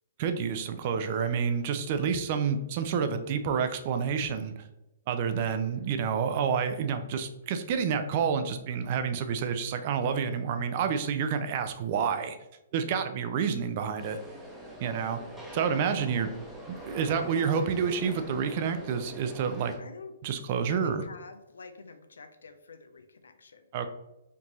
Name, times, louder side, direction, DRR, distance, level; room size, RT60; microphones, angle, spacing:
voice 1, 0.2-4.6 5.1-12.4 12.7-14.2 14.8-15.2 15.5-16.3 16.7-19.7 20.2-21.0 23.7-23.9, right 6 dB, 45° right, 9 dB, 0.4 m, -29 dB
sound 1, 14.0-19.8, equal, ahead, 0.8 m, -44 dB
voice 2, 19.8-20.1 20.6-23.7, left 4 dB, 85° left, 9 dB, 0.5 m, -46 dB
4.3 x 2.7 x 3.0 m, 0.94 s
hypercardioid pair, 135°, 0 cm